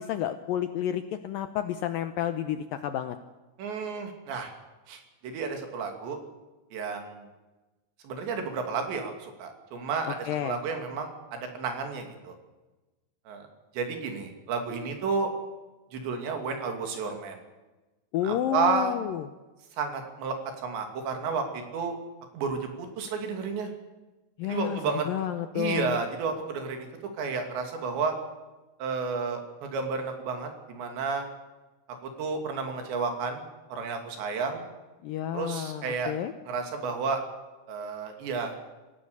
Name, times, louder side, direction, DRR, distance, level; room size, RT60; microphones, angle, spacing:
voice 1, 0.0-3.2 10.1-10.6 18.1-19.3 24.4-24.8 25.1-26.0 35.0-36.3, left 11 dB, 80° left, 9 dB, 2.1 m, -30 dB
voice 2, 3.6-4.5 4.9-6.2 6.7-7.2 8.0-12.3 13.3-13.5 13.7-15.3 15.9-17.4 18.2-19.0 19.8-20.4 20.6-22.0 22.3-23.7 24.4-25.1 25.5-26.9 27.2-28.1 28.8-31.3 32.0-34.6 35.3-36.1 36.5-37.2 37.7-38.7, right 5 dB, 90° right, 4 dB, 4.9 m, -31 dB
26.0 x 16.0 x 6.9 m, 1.1 s
omnidirectional pair, 4.9 m